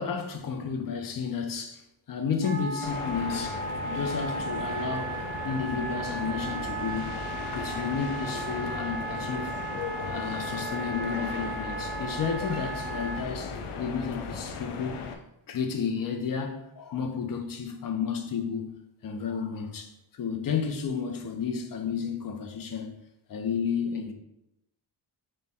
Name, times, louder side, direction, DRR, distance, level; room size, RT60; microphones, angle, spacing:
voice 1, 0.0-7.3 7.5-15.0 15.5-18.7 19.0-22.9 23.3-24.1, left 6 dB, 45° left, 0.5 m, -32 dB
Wind instrument woodwind instrument, 2.4-13.2, right 4 dB, 45° right, 0.8 m, -36 dB
sound 1, 2.8-15.2, left 5 dB, 90° left, 0.6 m, -37 dB
4.0 x 2.2 x 3.4 m
wide cardioid pair, 150°, 49 cm